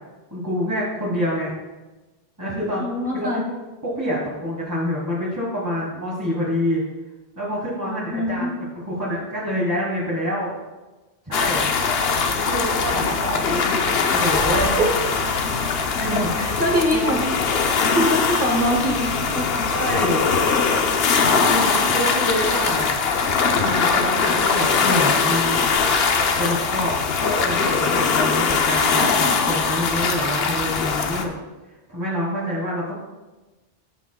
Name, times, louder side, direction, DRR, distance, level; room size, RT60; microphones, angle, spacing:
voice 1, 0.3-1.5 2.4-3.6 3.8-6.8 7.4-10.5 11.2-11.7 12.3-14.8 16.0-16.4 16.9-17.1 19.7-20.3 21.5-22.9 23.3-25.6 26.4-31.3 31.9-32.9, equal, 15° right, -6 dB, 1.4 m, -27 dB
voice 2, 2.8-3.4 8.1-8.6 14.5-14.9 16.4-17.3 17.7-19.7 20.5-20.6, equal, 50° right, -2 dB, 1.1 m, -24 dB
sound 1, 11.3-31.2, left 5 dB, 65° left, 0.9 m, -21 dB
13.5 x 5.9 x 2.3 m, 1.1 s
omnidirectional pair, 1.1 m